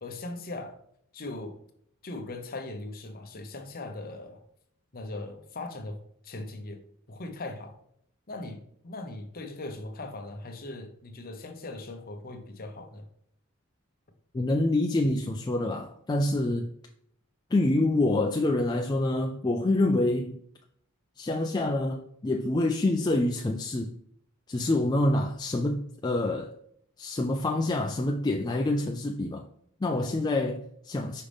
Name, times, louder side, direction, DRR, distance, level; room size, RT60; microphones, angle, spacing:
voice 1, 0.0-0.8 1.1-1.6 2.0-4.4 4.9-6.0 6.2-6.8 7.1-7.8 8.3-13.1, left 2 dB, 40° left, 0.8 m, -39 dB
voice 2, 14.3-16.7 17.5-20.4 21.2-23.9 24.5-26.5 27.0-29.5 29.8-31.2, left 2 dB, 20° left, 0.3 m, -26 dB
5.5 x 5.0 x 3.4 m
head